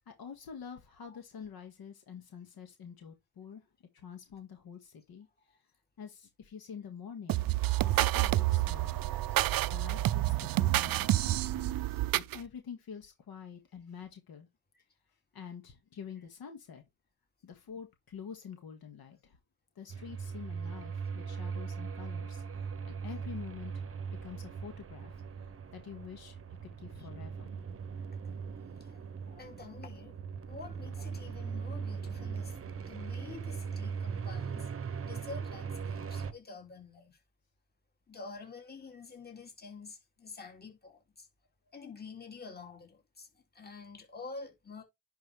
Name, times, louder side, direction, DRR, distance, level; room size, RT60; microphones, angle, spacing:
voice 1, 0.1-3.7 3.9-5.3 6.0-7.5 7.8-9.1 9.7-11.7 12.2-14.5 15.3-16.8 17.4-19.4 19.8-23.8 24.2-25.2 25.7-26.4 26.8-27.5, left 7 dB, 60° left, 1.9 m, -47 dB
sound 1, 7.3-12.4, right 16 dB, 60° right, 0.5 m, -28 dB
sound 2, 19.9-36.3, right 6 dB, 35° right, 0.9 m, -40 dB
voice 2, 28.8-30.1 30.4-34.7 35.0-37.2 38.1-41.3 41.7-44.8, left 4 dB, 25° left, 2.7 m, -48 dB
10.5 x 4.5 x 3.4 m
cardioid pair, 115°, 40 cm